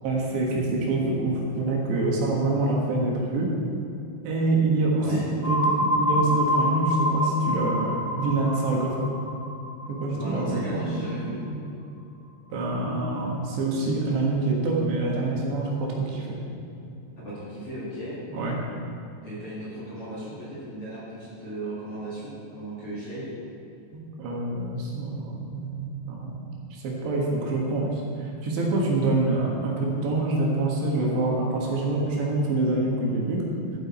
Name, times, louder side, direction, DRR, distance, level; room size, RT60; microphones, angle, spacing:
voice 1, 0.0-3.5 4.3-5.1 5.3-9.0 9.9-10.8 12.5-16.4 18.3-18.6 23.9-26.5 26.8-33.4, right 2 dB, 80° right, -2 dB, 3.8 m, -26 dB
voice 2, 5.0-5.3 10.1-11.4 17.2-18.2 19.2-23.3, right 1 dB, 45° left, -9 dB, 2.2 m, -36 dB
sound 1, 5.4-11.1, equal, 50° right, 0.9 m, -27 dB
13.5 x 7.8 x 4.3 m, 2.7 s
omnidirectional pair, 4.9 m